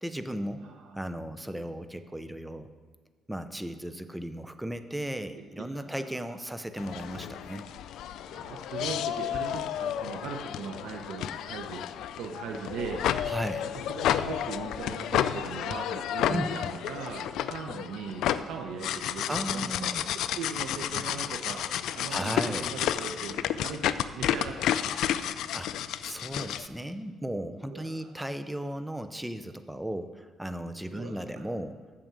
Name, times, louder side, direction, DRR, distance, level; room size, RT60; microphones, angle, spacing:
voice 1, 0.0-0.7 0.9-2.7 3.3-7.7 13.3-13.7 16.3-16.6 19.3-20.1 22.1-22.8 25.5-25.7 26.0-31.8, right 1 dB, 5° right, 10 dB, 0.6 m, -36 dB
voice 2, 0.6-0.9 5.3-6.2 8.3-11.8 12.2-13.0 14.0-23.8 24.1-25.3 27.7-28.1 30.9-31.4, right 5 dB, 85° right, 2 dB, 0.9 m, -39 dB
sound 1, 6.8-26.7, left 10 dB, 80° left, 0.4 m, -31 dB
8.6 x 6.8 x 7.5 m, 1.5 s
cardioid pair, 120°, 0 cm